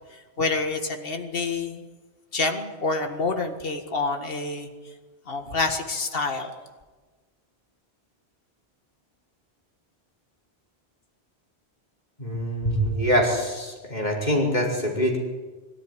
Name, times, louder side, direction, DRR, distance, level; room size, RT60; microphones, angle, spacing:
voice 1, 0.4-1.8 2.3-4.7 5.3-6.5, left 3 dB, 60° left, 5 dB, 2.0 m, -27 dB
voice 2, 12.2-15.2, equal, 40° left, -2 dB, 5.0 m, -24 dB
23.5 x 13.5 x 9.9 m, 1.3 s
omnidirectional pair, 1.1 m